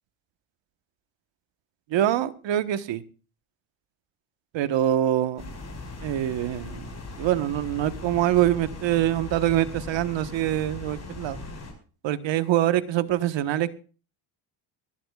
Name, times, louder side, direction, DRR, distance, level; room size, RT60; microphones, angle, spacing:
voice 1, 1.9-3.0 4.5-5.4 6.0-11.4 12.0-13.7, right 12 dB, 60° right, 12 dB, 1.3 m, -24 dB
sound 1, 5.4-11.7, left 3 dB, 35° left, 5.4 m, -39 dB
24.0 x 11.5 x 2.4 m, 0.37 s
supercardioid pair, 85°, 49 cm